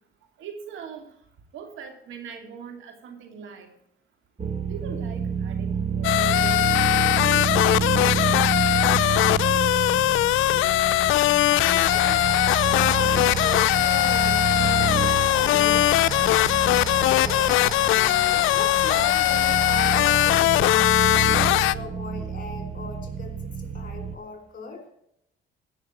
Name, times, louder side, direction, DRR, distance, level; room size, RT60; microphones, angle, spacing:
voice 1, 0.4-1.1 1.5-3.7 4.7-8.2, right 6 dB, 80° right, 5 dB, 2.7 m, -41 dB
sound 1, 4.4-24.2, right 6 dB, 30° right, 1.2 m, -29 dB
sound 2, 6.0-21.7, left 16 dB, 90° left, 0.4 m, -20 dB
voice 2, 10.5-12.3 12.7-16.7 17.1-17.4 17.9-24.9, left 4 dB, 45° left, 5 dB, 4.0 m, -38 dB
sound 3, 11.8-20.4, left 2 dB, 20° left, 4.6 m, -35 dB
15.0 x 6.5 x 7.3 m, 0.74 s
cardioid pair, 90°, 20 cm